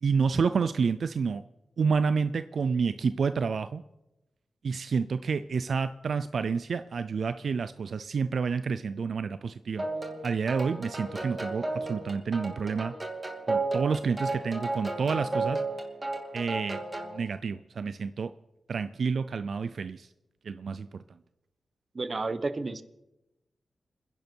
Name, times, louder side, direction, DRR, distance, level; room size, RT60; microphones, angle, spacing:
voice 1, 0.0-1.4 1.8-3.8 4.6-9.8 10.2-12.9 13.5-15.6 16.3-16.8 17.1-18.3 18.7-20.1 20.4-20.9, right 5 dB, 70° right, 12 dB, 0.5 m, -29 dB
sound 1, 9.8-17.2, right 2 dB, 25° right, 2.5 m, -33 dB
voice 2, 21.9-22.8, right 3 dB, 40° right, 13 dB, 1.0 m, -31 dB
28.5 x 10.5 x 4.6 m, 0.94 s
wide cardioid pair, 110°, 0 cm